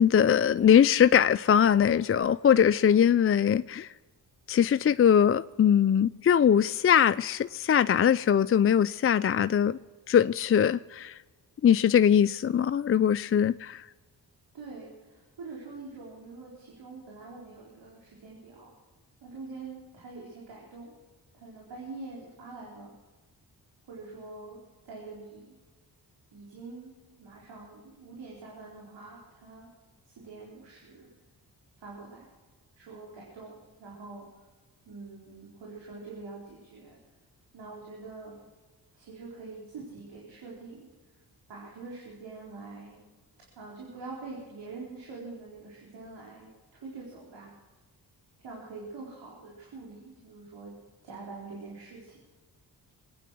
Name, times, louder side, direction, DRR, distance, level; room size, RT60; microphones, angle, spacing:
voice 1, 0.0-3.9 4.5-9.8 10.1-11.2 11.6-13.9, left 8 dB, 35° left, 0.4 m, -22 dB
voice 2, 14.5-18.7 19.2-21.0 21.3-22.9 23.9-24.6 24.8-25.5 26.3-26.9 27.2-29.7 30.1-31.1 31.8-32.3 32.8-34.4 34.9-37.0 37.5-38.4 38.9-40.9 41.5-43.0 43.6-47.5 48.4-50.7 51.0-52.2, right 3 dB, 80° right, 4.1 m, -45 dB
23.0 x 9.4 x 6.2 m
cardioid pair, 55°, 42 cm